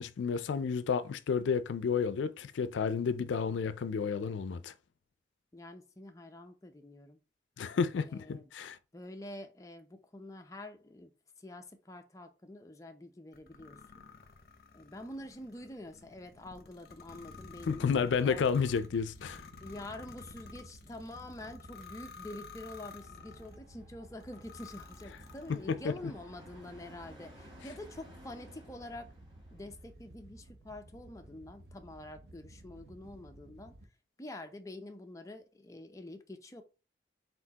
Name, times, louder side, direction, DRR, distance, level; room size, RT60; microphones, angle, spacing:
voice 1, 0.0-4.7 7.6-8.8 17.7-19.4 25.7-25.9, left 6 dB, 85° left, 0.4 m, -31 dB
voice 2, 5.5-7.2 8.0-8.5 8.9-11.1 11.4-14.0 14.7-18.9 19.6-29.1 29.5-33.8 34.2-36.6, left 1 dB, 15° left, 0.5 m, -47 dB
sound 1, 13.3-23.6 24.2-25.8, left 5 dB, 55° left, 0.7 m, -52 dB
Wind / Boat Water vehicle, 17.3-33.9, right 1 dB, 60° right, 0.8 m, -55 dB
sound 2, 22.4-29.9, equal, 25° right, 2.2 m, -58 dB
4.3 x 4.0 x 2.8 m
head